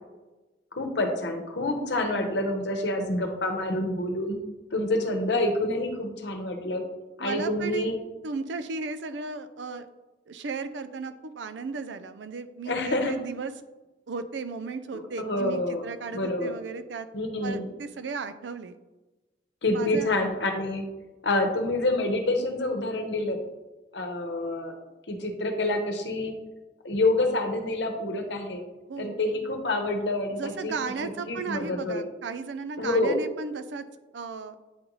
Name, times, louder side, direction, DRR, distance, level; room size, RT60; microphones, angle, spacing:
voice 1, 0.7-4.4 4.7-6.8 7.2-7.9 12.7-13.1 14.9-15.8 16.1-16.5 17.1-17.7 19.6-20.8 21.2-23.4 23.9-24.7 25.1-26.3 26.8-28.6 29.0-30.7 31.0-32.0 32.8-33.2, left 2 dB, 70° left, 4 dB, 0.9 m, -27 dB
voice 2, 7.2-7.9 8.2-9.9 10.3-13.5 14.1-17.1 17.4-18.7 19.7-20.1 28.9-29.2 30.3-33.8 34.1-34.6, right 4 dB, 75° right, 11 dB, 0.4 m, -35 dB
8.7 x 3.9 x 3.1 m, 1.1 s
head